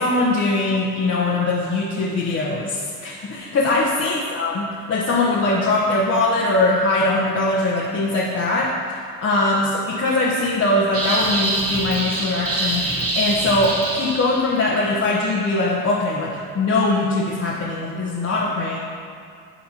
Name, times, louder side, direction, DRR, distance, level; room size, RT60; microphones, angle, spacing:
voice 1, 0.0-18.8, left 2 dB, 35° left, -6 dB, 1.3 m, -21 dB
sound 1, 10.9-14.6, right 2 dB, 30° right, 1.5 m, -25 dB
12.0 x 4.1 x 3.0 m, 2.3 s
hypercardioid pair, 70°, 44 cm